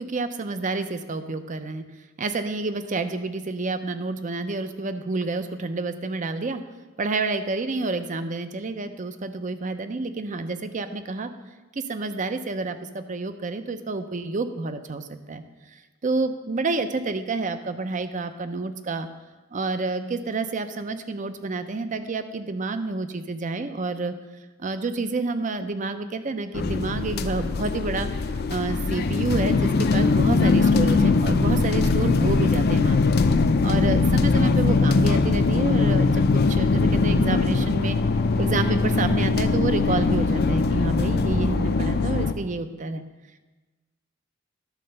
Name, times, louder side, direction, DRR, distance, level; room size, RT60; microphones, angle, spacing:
voice 1, 0.0-1.8 2.2-6.6 7.0-11.3 11.8-15.4 15.7-19.1 19.5-24.1 24.6-33.1 33.6-38.0 38.4-43.0, right 3 dB, 40° right, 10 dB, 0.5 m, -29 dB
sound 1, 26.5-42.3, left 3 dB, 50° left, 0.5 m, -21 dB
11.5 x 4.3 x 6.6 m, 1.2 s
head